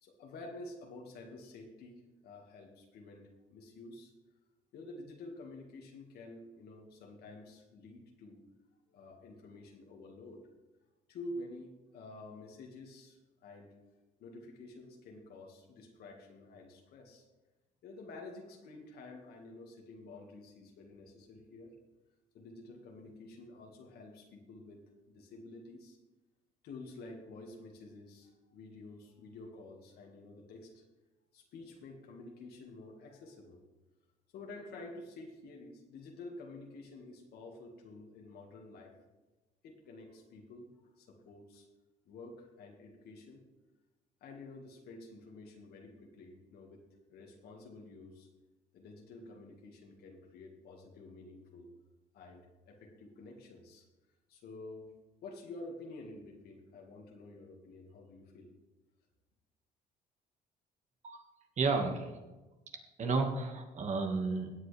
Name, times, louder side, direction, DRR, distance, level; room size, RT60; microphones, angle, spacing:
voice 1, 0.0-3.2 3.5-4.1 4.7-8.4 8.9-10.4 11.1-13.7 14.2-17.2 17.8-21.7 22.3-24.8 25.1-26.0 26.6-30.8 31.3-33.6 34.3-38.9 39.6-40.7 41.0-41.7 42.1-43.4 44.2-46.8 47.1-48.3 48.7-51.7 52.1-53.9 54.3-54.9 55.2-58.5, left 2 dB, 70° left, 1 dB, 1.8 m, -50 dB
voice 2, 61.6-62.1 63.0-64.5, right 3 dB, 45° right, 4 dB, 1.8 m, -32 dB
16.5 x 8.2 x 3.4 m, 1.1 s
cardioid pair, 110°, 17 cm